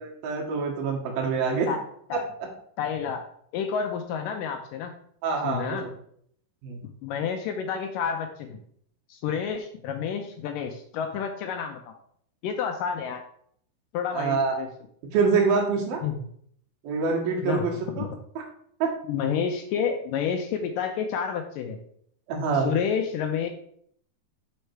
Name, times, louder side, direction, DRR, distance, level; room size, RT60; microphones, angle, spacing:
voice 1, 0.0-1.7 2.1-2.2 5.2-5.9 6.6-6.8 14.1-14.6 15.1-16.0 16.8-18.1 18.4-18.5 18.8-18.9 22.3-22.7, right 5 dB, 70° right, 0 dB, 3.2 m, -25 dB
voice 2, 2.8-3.2 3.5-4.9 5.4-5.9 7.0-8.6 9.1-11.9 12.4-13.2 13.9-14.7 16.0-16.2 17.4-18.2 19.1-21.8 22.6-23.5, left 7 dB, 80° left, 5 dB, 2.0 m, -29 dB
6.6 x 6.3 x 4.5 m, 0.66 s
omnidirectional pair, 4.4 m